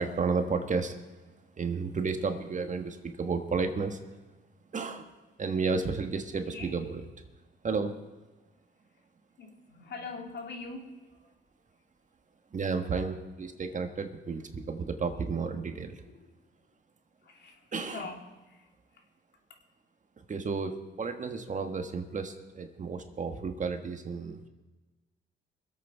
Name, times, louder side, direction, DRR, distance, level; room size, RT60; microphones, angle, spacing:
voice 1, 0.0-4.0 4.7-5.1 5.4-7.1 7.6-8.0 12.5-16.0 17.7-18.1 20.3-24.5, right 4 dB, 40° right, 6 dB, 1.5 m, -32 dB
voice 2, 9.4-10.9 17.2-18.2, left 4 dB, 60° left, 2 dB, 2.7 m, -42 dB
24.0 x 8.3 x 4.5 m, 1.2 s
cardioid pair, 90°, 20 cm